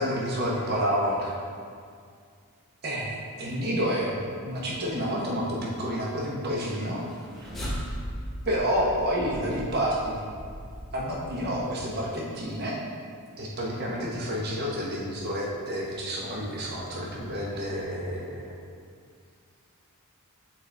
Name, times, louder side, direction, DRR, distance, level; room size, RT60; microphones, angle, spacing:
voice 1, 0.0-1.3 2.8-4.2 4.5-7.0 7.4-7.5 8.5-10.2 10.9-12.7 13.4-18.5, equal, 45° right, -4 dB, 1.0 m, -29 dB
sound 1, 6.9-12.2, equal, ahead, 1.1 m, -38 dB
7.4 x 4.1 x 3.4 m, 2.2 s
head